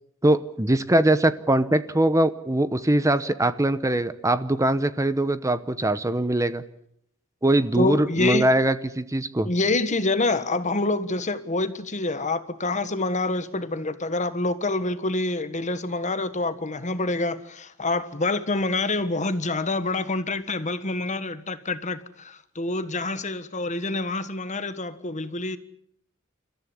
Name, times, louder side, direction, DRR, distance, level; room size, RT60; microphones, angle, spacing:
voice 1, 0.2-6.6 7.4-9.5, right 1 dB, 15° right, 0.9 m, -22 dB
voice 2, 7.8-8.5 9.4-25.6, left 2 dB, 35° left, 1.5 m, -26 dB
29.0 x 14.5 x 9.9 m
head